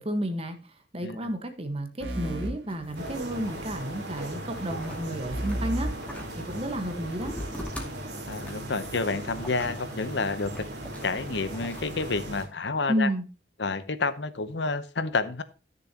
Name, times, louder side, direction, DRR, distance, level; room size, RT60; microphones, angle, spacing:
voice 1, 0.0-5.9 6.4-7.3 12.9-13.2, equal, 30° right, 6 dB, 1.4 m, -31 dB
sound 1, 2.0-3.6 5.3-7.1, right 1 dB, 80° right, 3.2 m, -35 dB
sound 2, 2.7-11.9, equal, 10° left, 2.3 m, -44 dB
sound 3, 2.9-12.5, right 1 dB, 65° right, 3.1 m, -38 dB
voice 2, 8.3-10.7 11.0-13.1 13.6-15.4, left 3 dB, 70° left, 13 dB, 0.9 m, -29 dB
13.5 x 6.8 x 2.9 m, 0.33 s
head